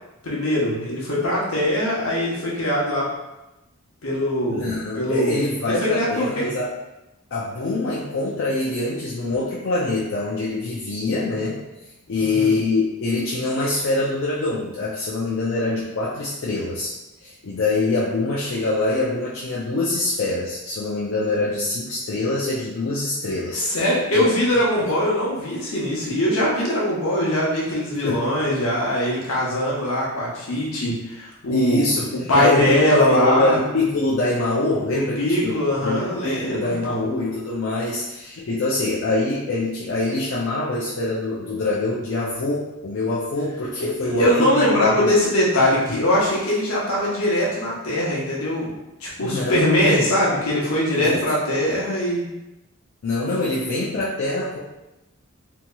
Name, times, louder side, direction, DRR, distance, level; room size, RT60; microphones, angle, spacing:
voice 1, 0.2-3.1 4.0-4.7 5.0-5.3 5.7-6.5 12.1-12.6 23.5-31.8 32.3-33.6 34.9-37.0 43.8-48.7 49.0-52.3, left 1 dB, 80° left, -5 dB, 0.9 m, -21 dB
voice 2, 4.5-6.7 7.3-11.6 12.1-16.9 17.2-23.7 24.1-24.3 28.0-28.2 31.5-45.1 49.2-50.1 51.0-51.2 53.0-54.6, left 2 dB, 60° left, -6 dB, 0.4 m, -24 dB
2.9 x 2.7 x 2.2 m, 0.98 s
head